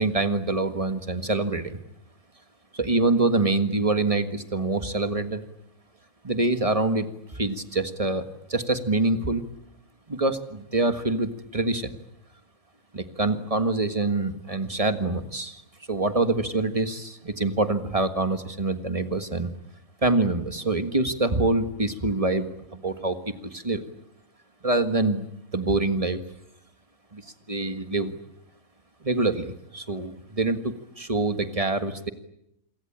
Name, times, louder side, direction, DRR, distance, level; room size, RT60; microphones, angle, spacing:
voice 1, 0.0-1.8 2.7-5.4 6.2-7.1 7.3-9.4 10.1-11.9 12.9-15.6 15.9-19.5 20.0-23.2 23.4-23.8 24.6-25.3 25.5-26.2 27.1-27.2 27.5-28.1 29.0-32.1, right 2 dB, 25° right, 9 dB, 1.7 m, -25 dB
27.5 x 23.5 x 8.8 m, 0.80 s
omnidirectional pair, 1.5 m